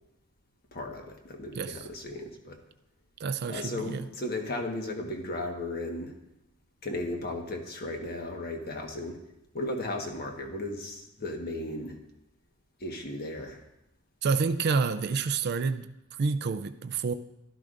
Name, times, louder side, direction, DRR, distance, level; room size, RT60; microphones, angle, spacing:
voice 1, 0.7-2.6 3.5-6.1 6.8-9.2 9.5-12.0 12.8-13.6, left 1 dB, 50° left, 3 dB, 1.3 m, -35 dB
voice 2, 3.2-4.1 14.2-17.1, right 5 dB, 50° right, 10 dB, 0.4 m, -29 dB
12.0 x 12.0 x 2.5 m, 0.90 s
head